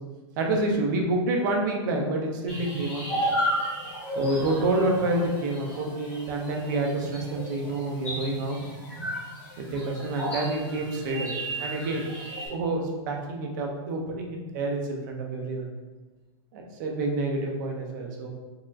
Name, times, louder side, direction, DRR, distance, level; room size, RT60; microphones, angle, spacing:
voice 1, 0.4-3.3 4.2-8.6 9.6-12.0 12.5-15.7 16.5-18.3, right 2 dB, 45° right, 1 dB, 0.7 m, -28 dB
sound 1, 2.5-12.5, right 1 dB, 10° left, 1.1 m, -33 dB
4.7 x 2.9 x 2.4 m, 1.2 s
supercardioid pair, 165°, 14 cm